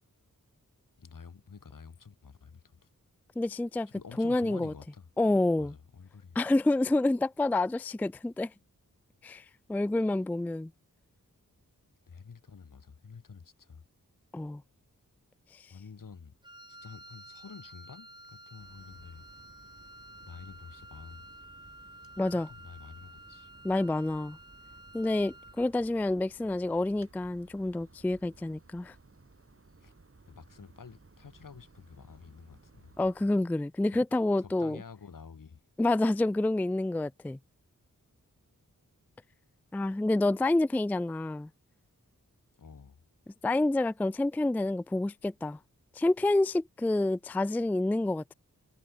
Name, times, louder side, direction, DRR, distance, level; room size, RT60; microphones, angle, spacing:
voice 1, 1.0-2.9 3.9-5.1 5.6-6.4 12.1-13.8 15.7-16.3 16.7-19.2 20.2-21.3 22.3-23.5 29.8-29.9 30.3-32.9 33.9-34.0 34.4-35.6 42.6-43.0, left 5 dB, 75° left, 3.9 m, -49 dB
voice 2, 3.4-3.9 4.2-4.7 5.2-5.7 6.4-8.5 9.2-10.7 14.3-14.6 22.2-22.5 23.6-24.4 24.9-28.9 33.0-34.8 35.8-37.4 39.7-41.5 43.4-45.6 46.0-48.3, left 2 dB, 5° left, 0.3 m, -28 dB
Wind instrument woodwind instrument, 16.4-25.7, right 1 dB, 15° right, 7.7 m, -52 dB
sound 1, 18.6-33.3, right 3 dB, 45° right, 5.7 m, -58 dB
wide cardioid pair, 70°, 33 cm